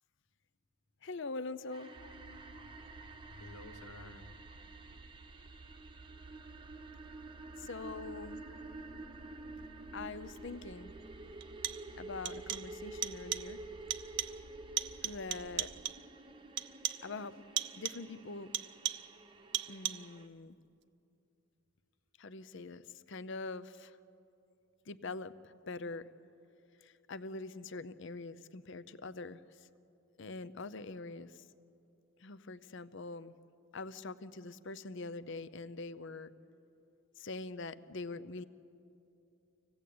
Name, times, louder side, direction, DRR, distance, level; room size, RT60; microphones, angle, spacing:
voice 1, 1.0-2.0 7.6-8.5 9.9-10.9 12.0-13.6 15.0-15.7 17.0-17.4 17.7-18.5 19.7-20.6 22.2-24.0 24.9-26.1 26.8-29.7 30.2-31.4 32.2-33.3 33.7-36.3 37.2-38.4, left 3 dB, 55° left, 15 dB, 0.6 m, -44 dB
sound 1, 1.7-20.3, right 2 dB, 20° right, 0.8 m, -50 dB
sound 2, 1.9-15.8, right 3 dB, 85° right, 1.1 m, -56 dB
voice 2, 2.0-2.7 3.3-4.5 4.8-5.0 8.5-8.6 11.2-11.3, left 2 dB, 80° left, 8 dB, 1.4 m, -54 dB
sound 3, 10.4-10.5 11.4-12.0 12.3-12.8 13.0-13.6 13.9-14.5 14.8-16.1 16.6-17.2 17.6-18.1 18.5-19.2 19.5-20.2, right 12 dB, 50° right, 0.6 m, -38 dB
25.5 x 17.0 x 8.6 m, 2.7 s
head